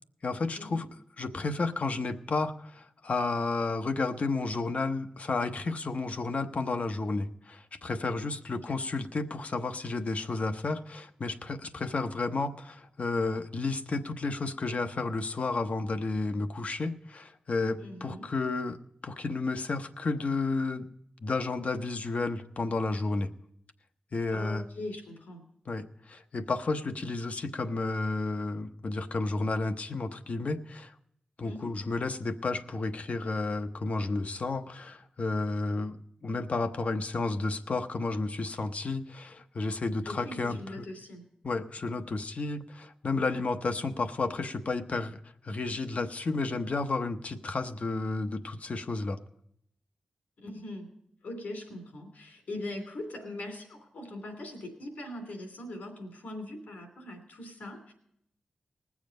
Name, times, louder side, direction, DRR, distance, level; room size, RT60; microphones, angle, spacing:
voice 1, 0.2-0.9 1.2-20.9 21.2-23.3 24.1-24.6 25.7-30.9 31.4-40.9 41.4-49.2, left 3 dB, 60° left, 8 dB, 0.8 m, -32 dB
voice 2, 17.8-18.3 24.3-25.4 31.4-31.7 40.0-41.2 50.4-50.9 51.2-57.9, left 1 dB, 85° left, 4 dB, 2.8 m, -41 dB
19.5 x 7.3 x 5.2 m, 0.73 s
cardioid pair, 45°, 3 cm